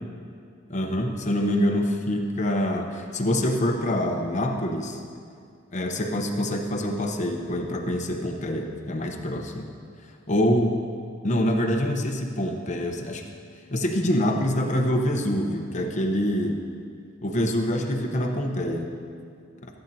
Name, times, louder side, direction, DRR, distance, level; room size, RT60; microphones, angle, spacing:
voice 1, 0.7-5.0 5.7-9.7 10.3-10.8 11.2-13.2 13.7-16.6 17.2-18.9, equal, 35° left, 2 dB, 0.9 m, -25 dB
15.5 x 8.8 x 2.8 m, 2.3 s
head